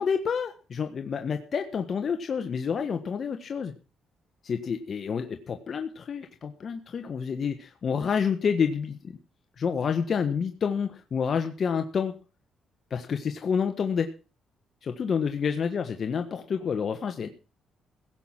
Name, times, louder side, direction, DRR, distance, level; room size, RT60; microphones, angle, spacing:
voice 1, 0.0-3.7 4.4-9.2 9.6-12.1 12.9-14.1 14.8-17.3, left 6 dB, 50° left, 6 dB, 1.3 m, -28 dB
17.0 x 6.0 x 7.4 m, 0.35 s
cardioid pair, 90°, 0 cm